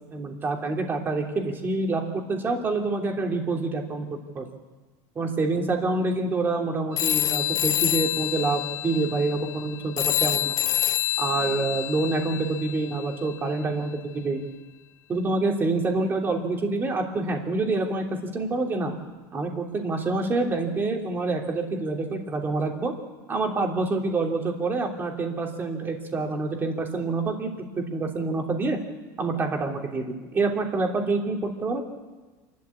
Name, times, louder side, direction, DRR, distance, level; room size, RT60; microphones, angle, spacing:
voice 1, 0.1-4.5 5.1-10.5 11.2-14.5 15.1-18.9 19.3-22.9 23.3-28.8 29.2-31.8, right 3 dB, 25° right, 1 dB, 3.1 m, -27 dB
sound 1, 7.0-13.1, left 14 dB, 40° left, 0.6 m, -27 dB
28.0 x 12.5 x 8.5 m, 1.3 s
cardioid pair, 150°, 9 cm